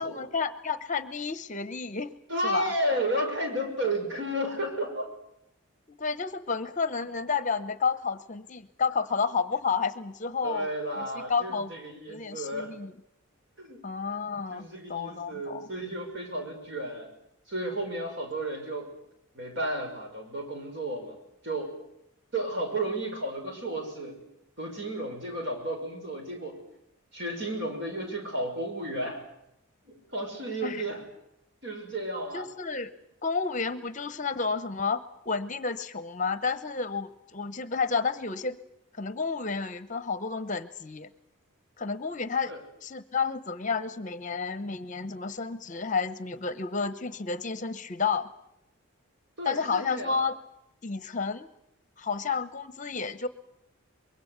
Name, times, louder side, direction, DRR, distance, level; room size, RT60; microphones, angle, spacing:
voice 1, 0.0-2.1 2.4-2.7 5.9-10.7 11.0-11.7 12.1-12.9 13.8-15.7 30.6-30.8 32.3-32.9 33.2-38.6 38.9-41.1 41.8-42.5 42.8-48.3 49.4-50.3 50.8-51.5 52.0-53.3, left 5 dB, 35° left, 13 dB, 0.9 m, -31 dB
voice 2, 2.3-5.1 10.4-12.7 13.6-13.8 14.5-17.1 17.5-18.9 19.3-21.2 21.4-21.7 22.3-24.2 24.6-26.6 27.1-29.2 29.9-31.0 31.6-32.5 42.5-42.6 49.4-50.2, right 1 dB, 55° right, 3 dB, 6.2 m, -32 dB
24.5 x 22.5 x 8.2 m, 0.79 s
head